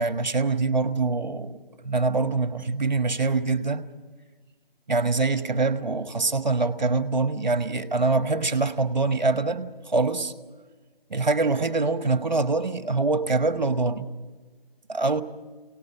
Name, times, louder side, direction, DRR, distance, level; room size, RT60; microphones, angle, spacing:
voice 1, 0.0-1.6 1.8-3.9 4.9-10.3 11.1-14.1 14.9-15.2, right 3 dB, 50° right, 1.4 m, -24 dB
28.5 x 18.5 x 6.9 m
figure-of-eight pair, 175°, 30 cm